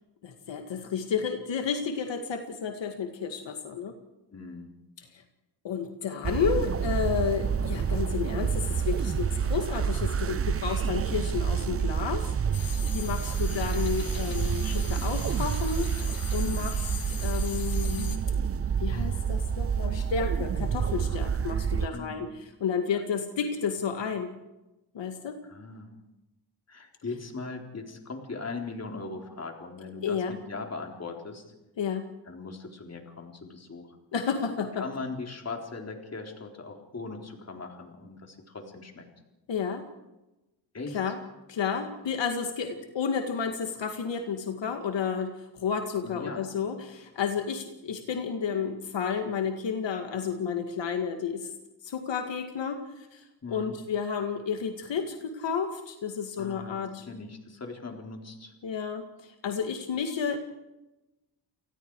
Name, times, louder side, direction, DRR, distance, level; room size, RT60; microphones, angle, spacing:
voice 1, 0.2-4.0 5.0-5.2 5.6-16.9 17.2-18.2 18.8-22.3 22.6-24.3 24.9-25.4 30.0-30.3 31.8-32.1 34.1-34.8 39.5-39.9 40.9-41.2 41.5-51.5 51.8-53.2 53.5-57.1 58.6-60.4, left 6 dB, 75° left, 5 dB, 2.2 m, -31 dB
voice 2, 4.3-4.7 8.7-8.9 16.4-16.8 21.9-22.2 25.4-25.9 26.7-31.4 32.3-34.0 34.8-39.1 40.7-41.0 46.0-46.5 53.4-53.8 56.4-58.5, left 3 dB, 35° left, 3 dB, 3.8 m, -40 dB
sound 1, 6.2-21.9, right 7 dB, 30° right, 0.6 m, -28 dB
sound 2, 12.5-18.2, left 6 dB, 50° left, 3.0 m, -41 dB
30.0 x 20.0 x 4.8 m, 1.0 s
wide cardioid pair, 120°, 44 cm